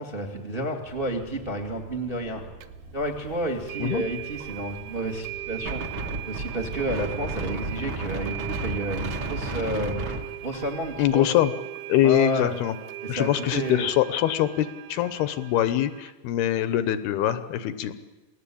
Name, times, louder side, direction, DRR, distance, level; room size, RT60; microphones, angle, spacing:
voice 1, 0.0-2.4 2.9-5.8 6.2-10.0 10.4-11.3 12.0-12.5 13.0-13.9, right 1 dB, 25° right, 4 dB, 1.2 m, -30 dB
sound 1, 0.8-8.1, right 2 dB, 60° right, 4.2 m, -46 dB
sound 2, 2.6-2.7 3.7-16.1, right 15 dB, 75° right, 2.8 m, -39 dB
Wind, 5.7-11.2, right 2 dB, 40° right, 2.0 m, -33 dB
voice 2, 11.0-11.5 11.9-12.7 13.1-17.9, left 12 dB, 75° left, 12 dB, 2.7 m, -23 dB
28.0 x 18.0 x 8.5 m, 1.2 s
omnidirectional pair, 4.8 m